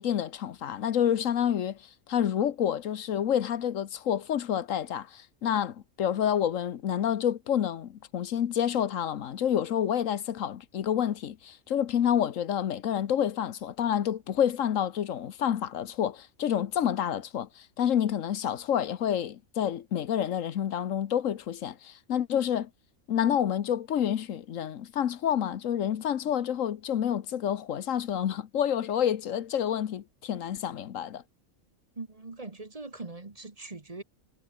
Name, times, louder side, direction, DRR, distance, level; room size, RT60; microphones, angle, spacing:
voice 1, 0.0-1.8 2.1-22.7 23.1-31.2, left 9 dB, 80° left, 1.3 m, -28 dB
voice 2, 32.0-34.0, right 3 dB, 30° right, 1.4 m, -41 dB
omnidirectional pair, 1.4 m